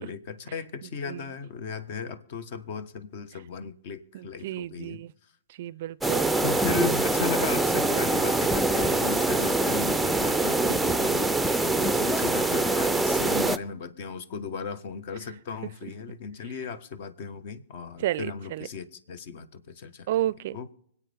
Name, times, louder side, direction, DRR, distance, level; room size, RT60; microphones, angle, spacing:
voice 1, 0.0-5.0 6.4-20.1 20.5-20.7, left 6 dB, 50° left, 1.2 m, -36 dB
voice 2, 4.1-5.1 5.6-6.3 18.0-18.7 20.1-20.7, right 13 dB, 50° right, 0.4 m, -31 dB
sound 1, 6.0-13.6, right 2 dB, 5° right, 0.5 m, -24 dB
25.0 x 8.6 x 3.5 m
hypercardioid pair, 125°, 0 cm